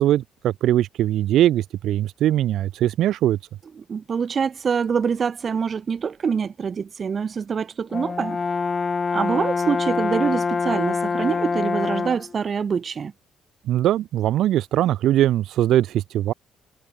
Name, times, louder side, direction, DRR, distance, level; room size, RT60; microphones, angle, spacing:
voice 1, 0.0-3.4 13.7-16.3, right 12 dB, 80° right, 3.6 m, -21 dB
voice 2, 3.8-8.4 9.1-13.1, right 6 dB, 45° right, 5.9 m, -25 dB
Brass instrument, 7.9-12.3, left 4 dB, 35° left, 5.0 m, -25 dB
cardioid pair, 90°, 0 cm